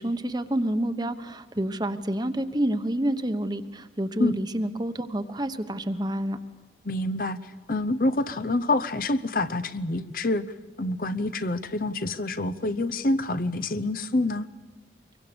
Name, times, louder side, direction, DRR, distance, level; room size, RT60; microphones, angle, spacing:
voice 1, 0.0-6.4, right 1 dB, 25° right, 10 dB, 1.1 m, -28 dB
voice 2, 6.8-14.5, left 2 dB, 50° left, 11 dB, 0.8 m, -27 dB
25.5 x 23.0 x 6.9 m, 1.5 s
head